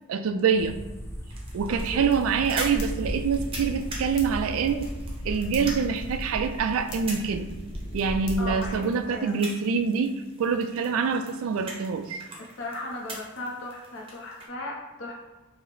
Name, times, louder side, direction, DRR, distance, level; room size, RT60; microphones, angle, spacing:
voice 1, 0.1-0.8 1.5-4.9 5.2-7.5 7.9-10.1 10.4-12.2, right 6 dB, 75° right, 9 dB, 0.3 m, -25 dB
sound 1, 0.5-6.2, equal, 10° left, 0.5 m, -37 dB
sound 2, 1.3-14.5, right 2 dB, 25° right, 0.6 m, -43 dB
sound 3, 1.6-8.8, equal, 90° left, 0.9 m, -37 dB
voice 2, 1.7-2.2 8.4-8.8 9.1-9.3 12.4-15.1, left 2 dB, 60° left, -1 dB, 0.7 m, -36 dB
4.6 x 2.0 x 3.1 m, 1.1 s
head